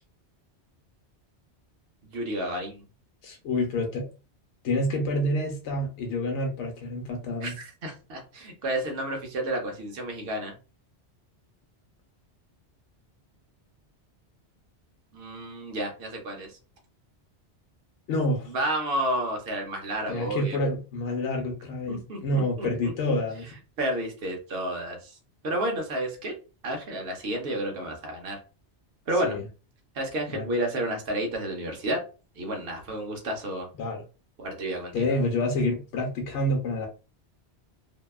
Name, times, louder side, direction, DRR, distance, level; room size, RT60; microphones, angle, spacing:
voice 1, 2.0-2.8 7.4-10.5 15.1-16.6 18.5-20.6 21.9-22.9 23.8-25.2 25.4-26.3 26.6-28.4 29.1-29.4 29.9-32.0 32.4-33.7 34.4-35.1, right 1 dB, 60° right, 2 dB, 0.9 m, -31 dB
voice 2, 3.2-4.1 4.6-7.5 18.1-18.5 20.1-23.5 29.2-29.4 30.3-30.5 33.8-34.0 34.9-36.9, left 1 dB, 80° left, 2 dB, 0.9 m, -28 dB
2.7 x 2.2 x 2.3 m, 0.34 s
omnidirectional pair, 1.2 m